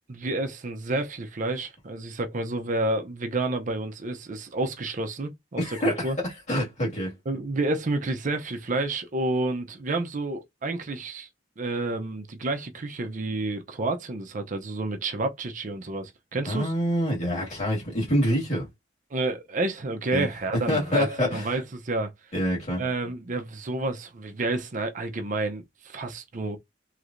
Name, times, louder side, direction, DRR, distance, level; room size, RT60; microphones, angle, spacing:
voice 1, 0.1-6.2 7.3-11.3 11.6-16.7 19.1-22.1 22.8-26.6, right 2 dB, 45° right, 0.6 m, -30 dB
voice 2, 5.6-7.1 16.5-18.7 20.1-20.3 20.7-21.5 22.3-22.8, equal, 40° left, 1.9 m, -26 dB
3.2 x 3.2 x 2.5 m
head